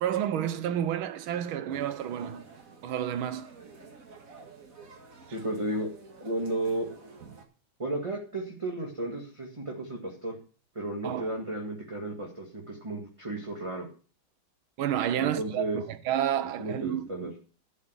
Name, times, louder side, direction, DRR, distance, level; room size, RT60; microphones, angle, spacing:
voice 1, 0.0-2.4 2.8-3.5 11.0-11.3 14.8-17.3, right 10 dB, 85° right, 1.6 m, -30 dB
sound 1, 1.7-7.4, right 4 dB, 45° right, 1.9 m, -50 dB
voice 2, 5.3-5.9 6.2-6.9 7.8-10.4 10.8-13.9 15.2-15.8 16.6-17.3, right 1 dB, 15° right, 1.7 m, -33 dB
12.0 x 5.4 x 8.0 m
omnidirectional pair, 2.2 m